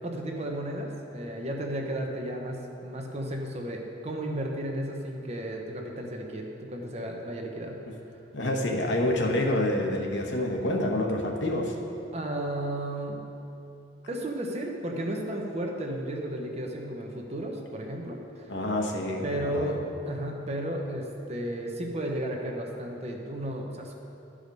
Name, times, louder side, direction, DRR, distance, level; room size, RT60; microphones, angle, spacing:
voice 1, 0.0-7.7 12.1-13.2 14.1-18.5 19.2-19.8 20.0-23.9, right 1 dB, 35° right, 1 dB, 0.9 m, -33 dB
voice 2, 8.3-11.8 18.5-19.7, left 1 dB, 65° left, 1 dB, 1.0 m, -27 dB
12.0 x 5.0 x 5.3 m, 2.8 s
head